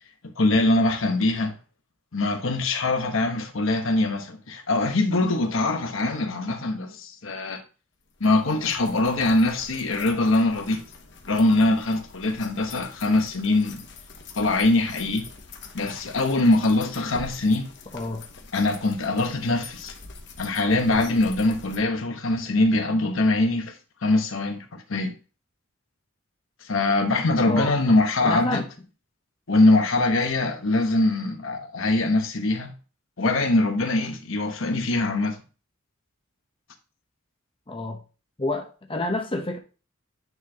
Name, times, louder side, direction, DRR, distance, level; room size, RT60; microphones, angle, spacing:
voice 1, 0.4-1.6 2.1-7.6 8.2-10.8 11.3-13.8 14.3-15.3 15.7-17.7 18.5-19.9 20.4-23.8 24.0-25.1 26.6-28.6 29.5-32.7 33.2-35.4, left 2 dB, 80° left, 1.1 m, -23 dB
sound 1, 8.1-21.8, left 4 dB, 60° left, 1.1 m, -44 dB
voice 2, 17.9-18.2 27.5-27.9 28.2-28.6 37.7-38.0 38.4-39.6, left 2 dB, 25° left, 0.8 m, -29 dB
9.3 x 4.2 x 2.8 m
head